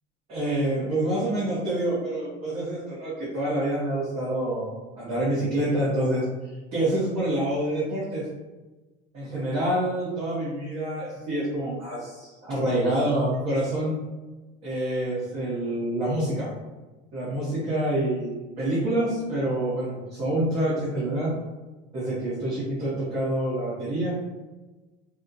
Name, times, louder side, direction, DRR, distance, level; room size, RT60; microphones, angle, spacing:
voice 1, 0.3-8.2 9.1-13.9 14.6-16.5 17.1-21.3 21.9-24.1, right 1 dB, 30° right, -9 dB, 1.0 m, -27 dB
4.1 x 2.1 x 2.6 m, 1.2 s
cardioid pair, 170°, 20 cm